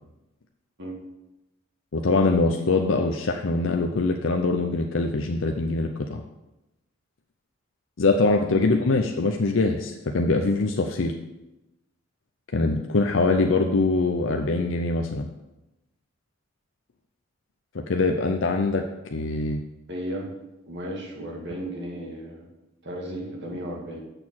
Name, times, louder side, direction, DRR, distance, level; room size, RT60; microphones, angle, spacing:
voice 1, 1.9-6.2 8.0-11.1 12.5-15.3 17.7-18.8 19.1-19.6, left 3 dB, 70° left, 3 dB, 0.6 m, -23 dB
voice 2, 19.9-20.3 20.7-22.5 22.8-24.0, right 1 dB, 60° right, -1 dB, 2.1 m, -34 dB
6.7 x 6.3 x 7.4 m, 0.97 s
head